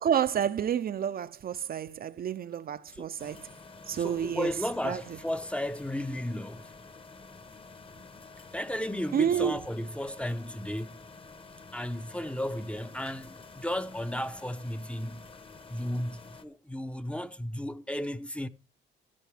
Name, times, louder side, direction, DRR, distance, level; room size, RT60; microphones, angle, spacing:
voice 1, 0.0-3.5 3.9-4.5 4.8-5.0 9.1-9.6, right 8 dB, 50° right, 0.6 m, -29 dB
sound 1, 3.2-16.4, left 4 dB, 25° left, 1.1 m, -50 dB
voice 2, 3.9-6.7 8.5-11.0 11.7-15.2 15.7-18.5, left 1 dB, 5° left, 0.7 m, -34 dB
13.5 x 9.8 x 3.4 m
cardioid pair, 90°, 20 cm